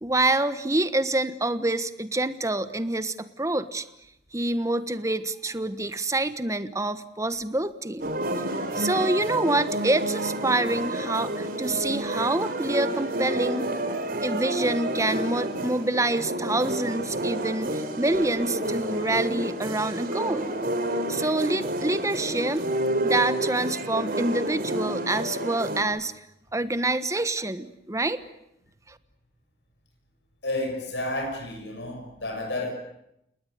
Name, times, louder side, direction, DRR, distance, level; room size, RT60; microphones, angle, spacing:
voice 1, 0.0-3.8 4.3-8.1 8.6-13.7 14.2-20.5 21.1-22.6 23.0-26.1 26.5-28.2 28.9-29.0, right 2 dB, 20° right, 12 dB, 1.2 m, -26 dB
sound 1, 8.0-25.8, right 1 dB, 55° right, 3.3 m, -29 dB
voice 2, 30.4-32.7, left 1 dB, 90° left, 2 dB, 6.8 m, -31 dB
29.5 x 19.5 x 9.4 m, 0.81 s
head